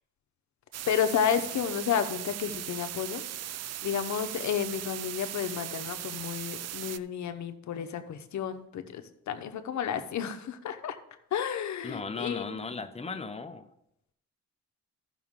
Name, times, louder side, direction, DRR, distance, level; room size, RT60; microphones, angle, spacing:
sound 1, 0.7-7.0, right 12 dB, 60° right, 0.4 m, -38 dB
voice 1, 0.9-3.2 3.8-11.0 11.3-12.6, left 8 dB, 75° left, 8 dB, 0.9 m, -31 dB
voice 2, 11.8-13.7, left 4 dB, 20° left, 9 dB, 0.8 m, -37 dB
14.5 x 5.9 x 3.7 m, 0.79 s
cardioid pair, 85°, 29 cm